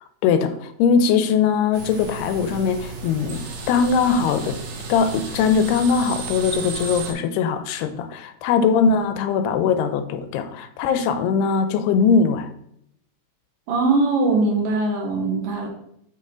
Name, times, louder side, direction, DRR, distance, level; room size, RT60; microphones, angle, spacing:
voice 1, 0.2-4.6 4.9-12.5, left 6 dB, 85° left, 10 dB, 2.6 m, -21 dB
sound 1, 1.7-7.1, right 3 dB, 85° right, 3.5 m, -33 dB
voice 2, 13.7-15.7, right 3 dB, 65° right, 1 dB, 2.7 m, -21 dB
7.1 x 5.4 x 3.7 m, 0.71 s
omnidirectional pair, 4.6 m